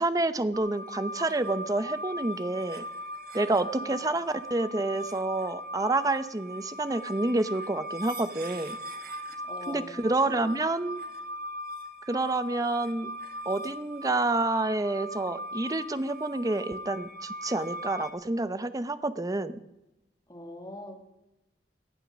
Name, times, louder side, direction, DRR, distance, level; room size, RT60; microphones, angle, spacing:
voice 1, 0.0-2.8 3.3-8.8 9.7-11.0 12.1-13.1 13.5-19.6, right 2 dB, 20° right, 13 dB, 0.6 m, -28 dB
sound 1, 0.5-18.1, equal, 55° right, 1.6 m, -39 dB
voice 2, 3.5-4.1 9.4-10.6 20.3-21.1, left 1 dB, 25° left, 4 dB, 2.1 m, -44 dB
18.5 x 9.9 x 6.3 m, 0.95 s
head